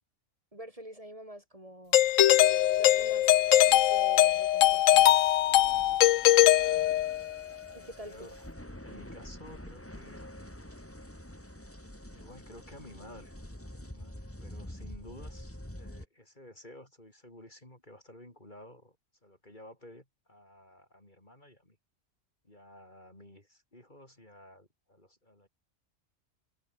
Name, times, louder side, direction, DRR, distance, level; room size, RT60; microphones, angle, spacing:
voice 1, 0.5-2.0 2.8-5.1 7.7-8.1, equal, 25° right, 6.6 m, -46 dB
Doorbell, 1.9-7.4, left 13 dB, 80° left, 1.0 m, -22 dB
sound 1, 2.3-16.1, left 1 dB, 10° left, 3.2 m, -47 dB
voice 2, 7.8-8.4 8.8-10.3 12.1-19.0 19.2-21.8 22.4-25.5, left 1 dB, 35° left, 5.2 m, -53 dB
omnidirectional pair, 1.3 m